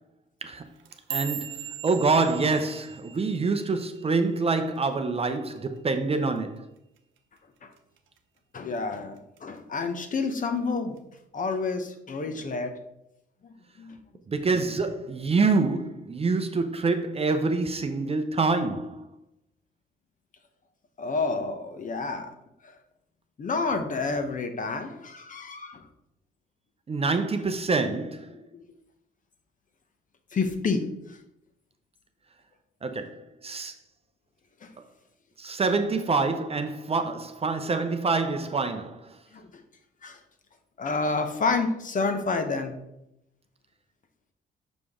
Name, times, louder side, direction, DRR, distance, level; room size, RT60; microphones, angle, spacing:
sound 1, 0.7-5.1 5.4-5.8 6.2-6.6 7.0-7.2 7.8-8.2 8.6-9.4 9.8-10.2 11.0-11.1, right 9 dB, 80° right, 0.9 m, -40 dB
voice 1, 1.1-6.6 14.3-19.1 26.9-28.3 32.8-33.7 35.4-39.0, right 3 dB, 30° right, 0.6 m, -26 dB
voice 2, 8.5-11.0 11.3-12.7 13.4-14.0 21.0-22.3 22.6-22.7 23.4-25.8 28.5-28.7 30.3-31.2 34.6-34.7 39.3-39.6 40.0-40.2 40.8-42.8, left 4 dB, 40° left, 0.9 m, -29 dB
6.2 x 5.0 x 3.6 m
cardioid pair, 90°, 20 cm